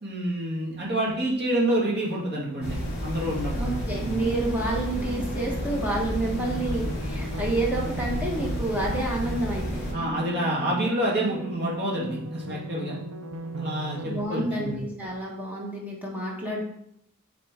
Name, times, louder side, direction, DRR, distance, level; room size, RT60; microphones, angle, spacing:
voice 1, 0.0-3.7 9.9-12.9 13.6-14.8, right 1 dB, 50° right, -3 dB, 1.9 m, -28 dB
sound 1, 2.2-14.2, right 3 dB, 75° right, 0.6 m, -37 dB
sound 2, 2.6-9.9, left 1 dB, 50° left, 2.3 m, -32 dB
voice 2, 3.5-9.8 14.0-16.6, right 2 dB, 10° right, -3 dB, 1.4 m, -29 dB
8.9 x 3.8 x 3.7 m, 0.75 s
head